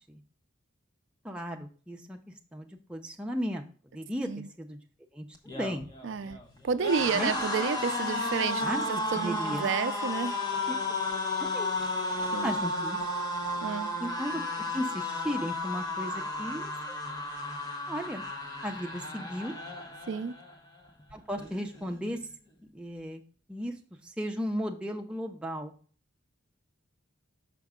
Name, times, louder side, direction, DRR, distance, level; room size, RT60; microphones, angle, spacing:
voice 1, 1.2-2.2 2.5-4.8 5.1-5.9 7.1-7.3 8.6-8.9 9.1-9.7 10.7-10.8 11.4-11.7 12.4-13.0 14.0-14.4 14.7-17.0 17.9-18.3 18.6-19.5 21.1-22.2 22.7-23.2 23.5-23.8 24.0-25.7, equal, 5° right, 0.7 m, -35 dB
sound 1, 5.3-20.5 20.9-21.1 21.4-22.2, left 2 dB, 20° left, 0.9 m, -33 dB
voice 2, 6.0-6.4 6.6-10.4 12.3-12.6 13.6-13.9 20.1-20.3, right 6 dB, 65° right, 0.4 m, -31 dB
5.9 x 5.3 x 3.6 m
head